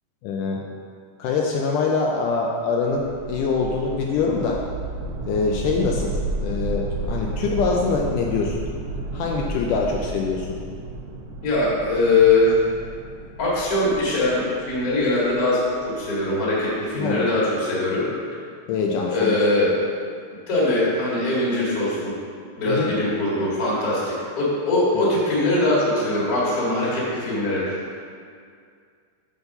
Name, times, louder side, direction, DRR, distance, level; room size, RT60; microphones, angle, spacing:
voice 1, 0.2-0.7 1.2-4.6 5.3-8.6 9.1-10.6 17.0-17.3 18.7-19.4 22.7-22.9 24.9-25.1, left 4 dB, 80° left, -1 dB, 1.9 m, -24 dB
sound 1, 2.9-16.0, right 2 dB, 75° right, 1.7 m, -32 dB
voice 2, 11.4-12.6 13.4-18.0 19.1-19.7 20.5-22.2 22.6-27.9, left 2 dB, 35° left, -7 dB, 1.6 m, -21 dB
7.0 x 4.1 x 6.6 m, 2.2 s
omnidirectional pair, 4.0 m